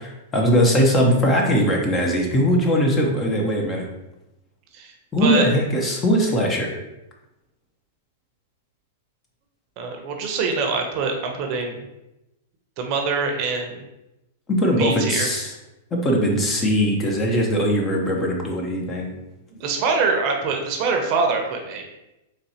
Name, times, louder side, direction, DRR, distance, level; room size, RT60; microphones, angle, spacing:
voice 1, 0.3-3.8 5.1-6.7 14.5-15.5 15.9-19.2, equal, 20° left, 0 dB, 0.8 m, -20 dB
voice 2, 9.8-11.8 12.8-13.8 14.8-15.3 19.5-21.9, right 4 dB, 45° right, 3 dB, 0.7 m, -24 dB
4.2 x 3.1 x 2.8 m, 0.93 s
hypercardioid pair, 135°, 0 cm